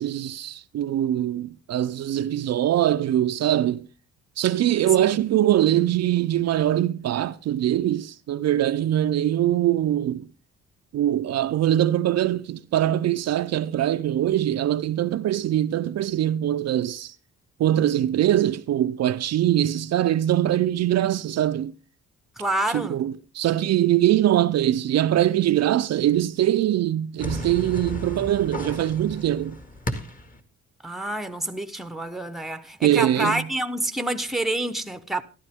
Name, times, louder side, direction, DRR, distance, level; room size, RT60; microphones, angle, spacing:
voice 1, 0.0-3.9 4.4-10.3 10.9-17.1 17.6-21.7 22.7-29.6 32.8-33.5, right 12 dB, 60° right, 0.5 m, -22 dB
voice 2, 22.4-23.0 30.8-35.2, right 1 dB, ahead, 0.9 m, -28 dB
sound 1, 27.2-30.4, left 1 dB, 25° left, 1.8 m, -34 dB
13.5 x 12.0 x 3.5 m
cardioid pair, 90°, 30 cm